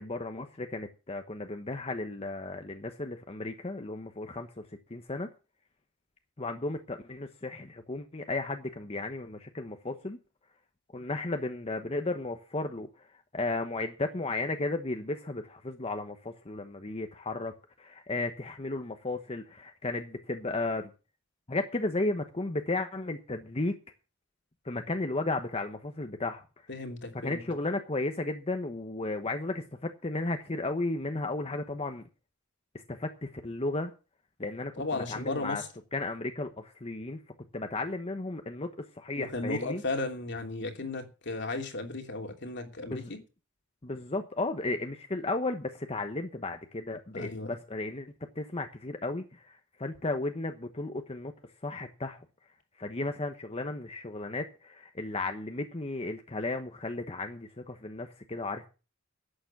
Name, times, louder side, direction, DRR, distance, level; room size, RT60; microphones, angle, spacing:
voice 1, 0.0-4.6 4.9-5.3 6.4-10.2 10.9-13.1 13.3-17.5 17.8-20.9 21.5-23.8 24.6-26.4 27.2-32.0 32.9-33.9 34.4-35.6 35.9-37.2 37.5-38.7 39.0-39.8 42.8-43.1 43.8-48.1 48.4-51.3 51.6-52.2 52.8-58.7, left 2 dB, 30° left, 6 dB, 1.1 m, -34 dB
voice 2, 26.7-27.4 34.8-35.7 39.2-43.2 47.1-47.6, left 2 dB, 60° left, 4 dB, 3.0 m, -35 dB
11.5 x 8.9 x 7.3 m, 0.33 s
head